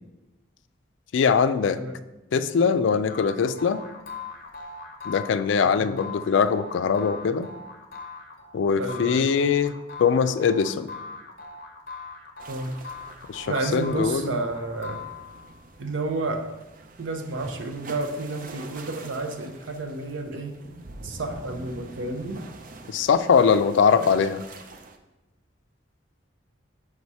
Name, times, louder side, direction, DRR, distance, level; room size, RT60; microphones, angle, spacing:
voice 1, 1.1-1.8 2.3-3.8 5.1-7.5 8.5-9.7 10.0-10.9 13.3-14.4 22.9-24.4, left 6 dB, 80° left, 12 dB, 0.3 m, -22 dB
sound 1, 3.1-15.6, left 4 dB, 50° left, 0.7 m, -41 dB
voice 2, 8.7-9.2 12.5-12.8 13.5-15.0 15.8-16.4 17.0-20.6 21.0-22.4, right 2 dB, 90° right, 6 dB, 0.7 m, -31 dB
sound 2, 12.4-25.0, right 3 dB, 45° right, 0.4 m, -44 dB
5.0 x 4.7 x 4.1 m, 1.0 s
head